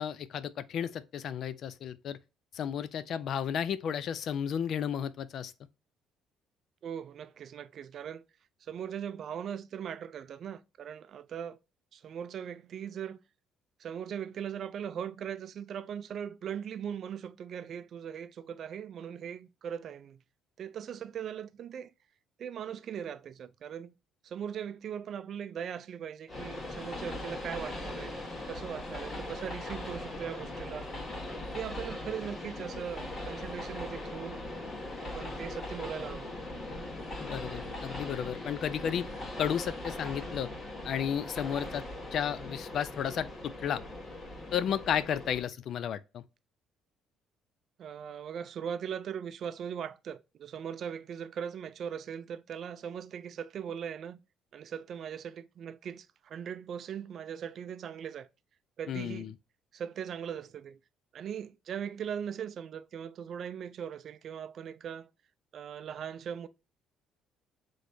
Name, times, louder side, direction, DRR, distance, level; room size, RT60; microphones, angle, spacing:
voice 1, 0.0-2.2 2.5-5.5 37.2-39.1 39.4-40.5 40.8-41.8 42.1-43.8 44.5-46.2 58.9-59.3, left 8 dB, 55° left, 0.5 m, -33 dB
voice 2, 6.8-8.2 8.6-11.6 11.9-13.2 13.8-20.2 20.6-21.9 22.4-23.9 24.2-28.1 28.5-30.9 31.5-34.4 35.0-36.3 47.8-54.2 54.5-58.3 58.8-59.3 59.7-60.8 61.1-65.1 65.5-66.5, right 8 dB, 50° right, 0.4 m, -39 dB
Train, 26.3-45.4, left 1 dB, 25° left, 1.8 m, -40 dB
6.2 x 3.2 x 2.7 m
cardioid pair, 135°, 0 cm